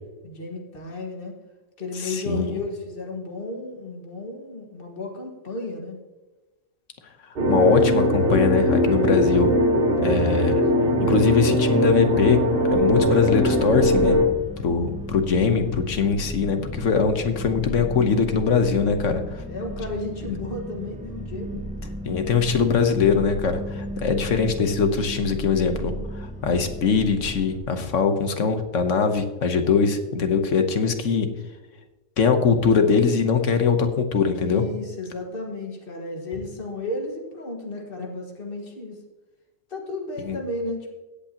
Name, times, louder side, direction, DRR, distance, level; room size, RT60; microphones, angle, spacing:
voice 1, 0.2-1.3 1.8-6.0 10.2-10.6 19.5-21.6 34.4-39.0 39.7-40.9, left 2 dB, 45° left, 1 dB, 1.8 m, -33 dB
voice 2, 1.9-2.6 7.5-9.5 10.0-10.5 11.0-12.4 12.7-14.2 14.6-19.4 22.1-31.3 32.2-34.6 40.2-40.4, left 5 dB, 75° left, 7 dB, 1.3 m, -22 dB
sound 1, 7.4-14.3, equal, 45° right, 1.5 m, -20 dB
sound 2, 12.7-27.6, right 1 dB, 5° right, 0.8 m, -35 dB
16.5 x 8.3 x 2.9 m, 1.1 s
omnidirectional pair, 1.3 m